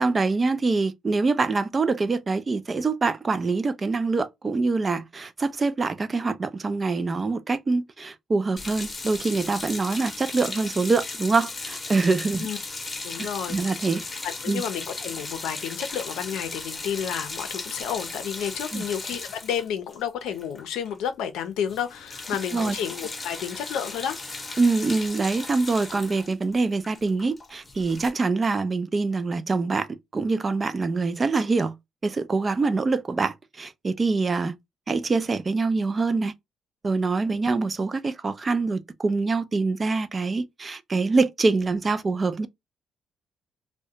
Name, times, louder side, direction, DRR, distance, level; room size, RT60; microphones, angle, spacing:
voice 1, 0.0-12.5 13.2-14.0 14.5-14.6 18.7-18.8 22.5-22.8 24.6-29.9 30.1-31.7 32.0-34.6 34.9-36.3 36.8-42.5, right 3 dB, 35° right, 0.4 m, -25 dB
sound 1, 8.6-20.9 21.2-21.4 21.7-28.1, left 3 dB, 25° left, 0.8 m, -36 dB
voice 2, 13.0-13.7 14.2-24.2, left 8 dB, 90° left, 0.5 m, -31 dB
2.4 x 2.2 x 2.7 m
cardioid pair, 90°, 0 cm